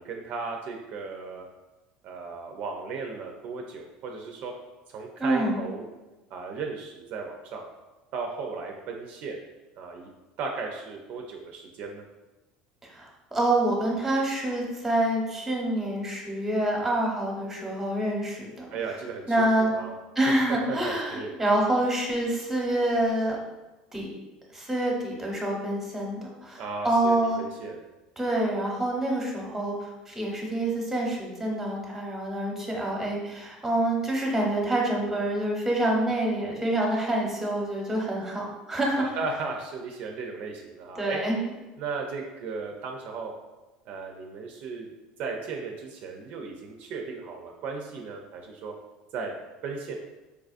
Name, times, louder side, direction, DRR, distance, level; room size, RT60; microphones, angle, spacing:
voice 1, 0.0-1.5 2.0-4.5 4.9-5.8 6.3-7.7 8.1-9.4 9.8-10.1 10.4-12.0 18.7-19.9 20.5-21.3 26.6-27.8 39.0-41.2 41.8-43.3 43.9-44.9 45.2-48.7 49.1-49.3 49.6-49.9, right 4 dB, 55° right, 2 dB, 0.4 m, -36 dB
voice 2, 5.2-5.6 12.8-18.7 19.3-19.7 20.2-23.4 23.9-24.1 24.5-27.4 28.2-39.0 40.9-41.4, right 1 dB, 5° right, -2 dB, 0.9 m, -27 dB
4.6 x 2.3 x 2.4 m, 1.1 s
supercardioid pair, 120°, 3 cm